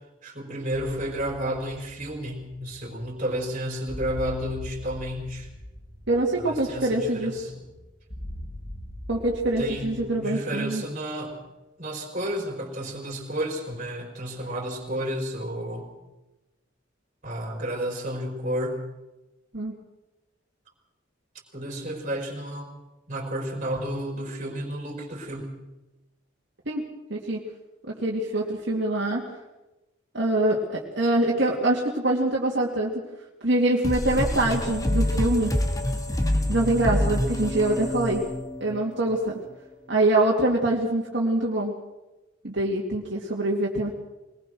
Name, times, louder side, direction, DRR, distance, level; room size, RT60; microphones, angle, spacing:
voice 1, 0.2-5.5 6.4-7.6 9.6-11.4 11.8-15.9 17.2-18.8 21.5-22.7 23.1-25.5, equal, 40° right, 2 dB, 4.2 m, -31 dB
sound 1, 0.7-10.1, equal, 65° left, 7.3 m, -42 dB
voice 2, 6.1-7.3 9.1-10.8 19.5-19.8 26.7-27.4 27.9-29.3 30.1-33.0 33.4-35.6 36.5-38.3 38.6-39.4 39.9-41.8 42.4-43.9, right 1 dB, 65° right, -3 dB, 2.5 m, -24 dB
sound 2, 33.8-39.1, left 1 dB, 20° left, 1.9 m, -26 dB
22.0 x 20.0 x 6.2 m, 1.0 s
head